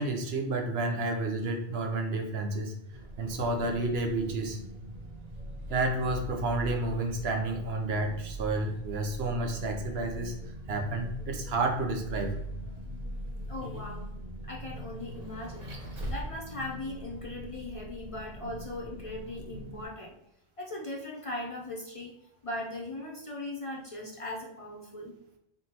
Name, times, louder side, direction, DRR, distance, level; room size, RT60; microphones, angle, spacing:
voice 1, 0.0-2.7 3.2-4.6 5.7-10.4 10.7-12.4, right 2 dB, 75° right, 3 dB, 0.9 m, -30 dB
Vehicle, 2.9-19.8, right 1 dB, 45° right, 0.8 m, -41 dB
voice 2, 13.5-14.1 14.4-15.7 16.1-20.1 20.6-22.1 22.4-25.1, left 2 dB, 40° left, -2 dB, 0.6 m, -39 dB
3.9 x 3.6 x 2.8 m, 0.75 s
omnidirectional pair, 1.1 m